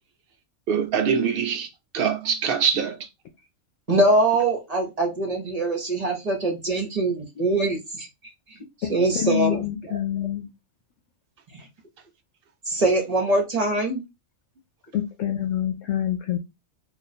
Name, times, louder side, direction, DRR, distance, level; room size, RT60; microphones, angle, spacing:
voice 1, 0.7-1.7 1.9-2.9, right 7 dB, 60° right, 0.6 m, -23 dB
voice 2, 3.9-8.1 8.9-9.6 9.9-10.0 12.7-14.0, right 2 dB, 35° right, 1.0 m, -23 dB
voice 3, 8.8-10.5 14.9-16.4, left 10 dB, 80° left, 0.9 m, -26 dB
2.5 x 2.5 x 4.1 m
omnidirectional pair, 1.3 m